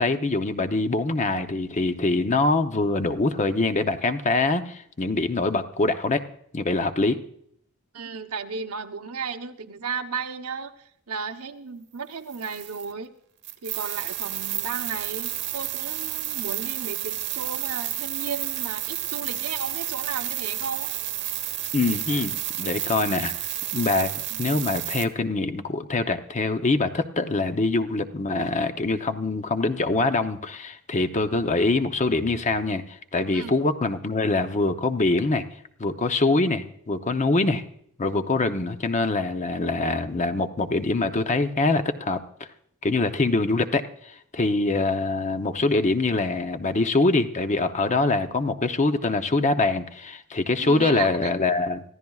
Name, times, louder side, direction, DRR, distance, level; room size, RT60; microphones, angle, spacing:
voice 1, 0.0-6.2 6.5-7.2 21.7-23.3 23.7-35.4 35.8-37.6 38.0-42.5 42.8-51.8, left 3 dB, 35° left, 8 dB, 0.7 m, -24 dB
voice 2, 7.9-13.1 13.6-20.9 24.3-24.6 33.3-33.6 50.6-51.3, right 5 dB, 80° right, 6 dB, 0.9 m, -34 dB
sound 1, 12.3-12.9 13.4-25.1, right 13 dB, 55° right, 1.1 m, -31 dB
25.5 x 14.5 x 2.4 m, 0.69 s
head